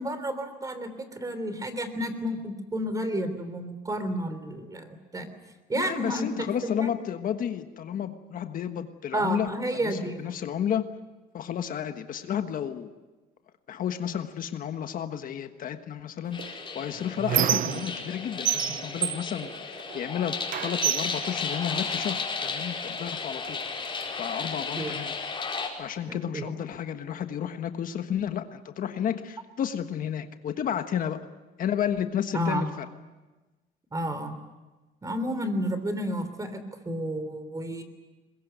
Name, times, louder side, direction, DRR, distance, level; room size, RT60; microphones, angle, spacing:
voice 1, 0.0-5.3 5.7-6.3 6.6-6.9 9.1-10.4 24.8-25.0 26.3-26.5 32.3-32.7 33.9-34.4 35.0-37.8, right 1 dB, 20° right, 10 dB, 3.3 m, -31 dB
voice 2, 5.8-9.5 9.8-10.9 11.3-12.9 13.7-23.6 24.2-25.1 25.8-31.3 31.6-32.9, left 9 dB, 55° left, 8 dB, 1.4 m, -32 dB
sound 1, 16.3-25.7, left 4 dB, 30° left, 5.1 m, -34 dB
Squeak, 16.4-18.2 18.5-20.1 20.5-22.2 23.0-23.1 23.4-24.5, right 11 dB, 55° right, 0.7 m, -30 dB
22.0 x 21.0 x 9.3 m, 1.2 s
cardioid pair, 110°, 17 cm